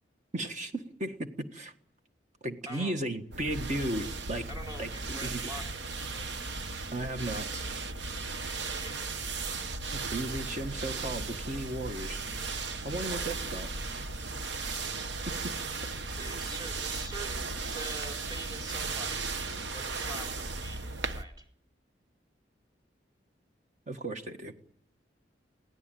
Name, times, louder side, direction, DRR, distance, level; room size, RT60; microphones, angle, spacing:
voice 1, 0.3-1.7 2.4-4.4 4.8-5.7 6.9-7.7 9.9-12.2 12.8-13.7 14.6-14.9 15.4-15.5 23.9-24.5, right 1 dB, 40° right, 6 dB, 1.5 m, -35 dB
voice 2, 2.7-3.0 4.5-6.4 8.7-9.3 16.1-19.3 19.7-21.5, right 1 dB, 20° right, 2 dB, 4.4 m, -45 dB
sound 1, 3.3-21.2, right 3 dB, 70° right, 1.1 m, -36 dB
22.0 x 17.0 x 9.2 m, 0.66 s
head